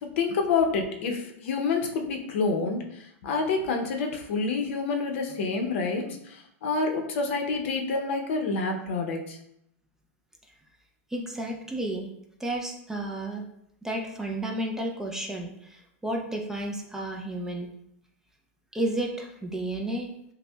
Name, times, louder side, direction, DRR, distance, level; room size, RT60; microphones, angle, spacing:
voice 1, 0.2-2.8 3.2-6.2 6.6-9.4, left 4 dB, 60° left, 3 dB, 0.6 m, -27 dB
voice 2, 11.1-12.1 12.4-13.4 13.8-17.7 18.7-20.1, right 1 dB, 5° right, 1 dB, 0.3 m, -32 dB
5.4 x 2.1 x 2.2 m, 0.75 s
supercardioid pair, 145°, 7 cm